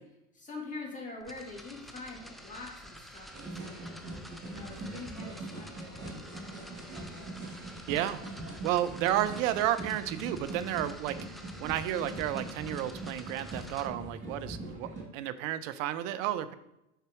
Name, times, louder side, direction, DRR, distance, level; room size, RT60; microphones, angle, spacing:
voice 1, 0.3-4.0 4.4-7.3, left 3 dB, 15° left, -3 dB, 2.5 m, -45 dB
sound 1, 1.2-13.9, equal, ahead, 0.4 m, -49 dB
sound 2, 3.3-15.0, right 2 dB, 25° right, 2.4 m, -42 dB
voice 2, 7.9-8.2 8.6-11.2 11.6-16.5, right 12 dB, 60° right, 14 dB, 0.7 m, -32 dB
6.7 x 5.7 x 3.1 m, 0.87 s
hypercardioid pair, 100°, 44 cm